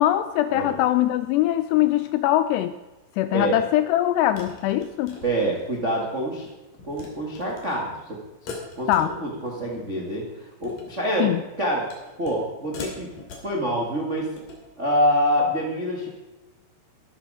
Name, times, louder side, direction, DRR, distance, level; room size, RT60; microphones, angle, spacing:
voice 1, 0.0-2.8 3.2-5.2 8.9-9.1 11.2-11.4, left 13 dB, 85° left, 12 dB, 2.4 m, -22 dB
sound 1, 4.4-5.9 6.2-6.5 6.8-7.1 7.3-7.8 8.5-9.5 9.8-10.1 10.5-11.0 11.9-12.5 12.7-13.5 14.2-14.6, left 4 dB, 50° left, 3.9 m, -40 dB
voice 2, 5.2-6.5 6.8-8.2 8.4-11.8 12.2-13.1 13.4-14.3 14.8-16.1, equal, 85° right, -1 dB, 0.6 m, -26 dB
15.0 x 12.5 x 5.0 m, 1.1 s
omnidirectional pair, 5.3 m